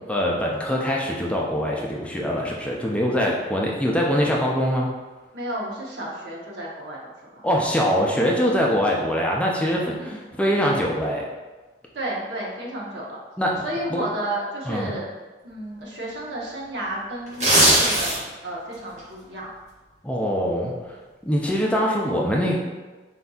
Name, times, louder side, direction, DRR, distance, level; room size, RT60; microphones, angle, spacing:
voice 1, 0.1-4.9 7.4-11.3 13.4-13.7 13.9-14.0 14.7-14.9 20.0-20.7 21.2-22.6, equal, 5° left, -2 dB, 0.4 m, -23 dB
voice 2, 5.3-7.5 10.0-10.2 11.9-13.2 13.6-15.1 15.4-19.5, right 1 dB, 70° right, -4 dB, 1.0 m, -32 dB
sound 1, 17.3-18.4 18.8-19.0, right 1 dB, 40° right, 1.5 m, -18 dB
4.3 x 3.9 x 2.3 m, 1.3 s
head